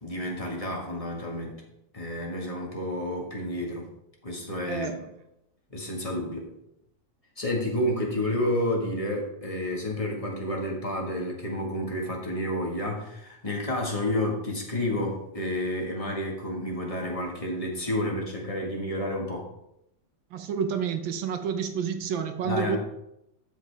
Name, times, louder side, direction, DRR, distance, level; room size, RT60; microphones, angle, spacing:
voice 1, 0.0-1.6 1.9-3.9 4.2-5.0 5.7-6.5 7.4-19.4 22.4-22.8, left 1 dB, 20° left, -1 dB, 1.6 m, -30 dB
voice 2, 4.7-5.0 20.3-22.8, right 7 dB, 90° right, 7 dB, 1.7 m, -29 dB
12.5 x 5.2 x 3.4 m, 0.83 s
omnidirectional pair, 2.0 m